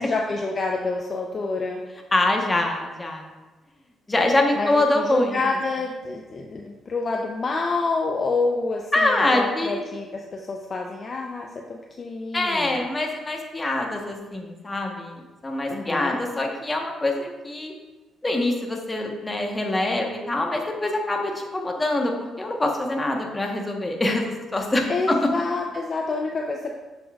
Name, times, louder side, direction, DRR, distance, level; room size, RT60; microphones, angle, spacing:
voice 1, 0.0-1.8 4.6-12.8 15.7-16.2 24.9-26.7, left 3 dB, 40° left, 1 dB, 0.6 m, -28 dB
voice 2, 2.1-3.2 4.1-5.4 8.9-9.8 12.3-17.7 18.2-25.2, left 2 dB, 20° left, 1 dB, 1.1 m, -24 dB
7.1 x 6.8 x 2.4 m, 1.2 s
cardioid pair, 90°, 0 cm